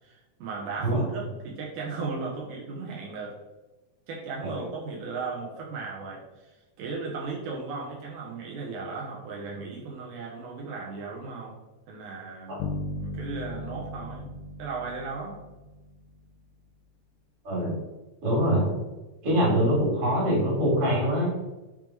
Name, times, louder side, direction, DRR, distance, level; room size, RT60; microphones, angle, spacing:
voice 1, 0.0-3.4 4.1-11.6 11.9-12.7 12.9-14.3 14.6-15.4, right 4 dB, 85° right, -3 dB, 2.4 m, -36 dB
sound 1, 12.6-16.3, left 2 dB, 90° left, 2.1 m, -37 dB
voice 2, 18.2-18.7 19.2-21.3, equal, 50° right, -4 dB, 3.0 m, -23 dB
6.5 x 3.7 x 4.5 m, 1.1 s
omnidirectional pair, 3.5 m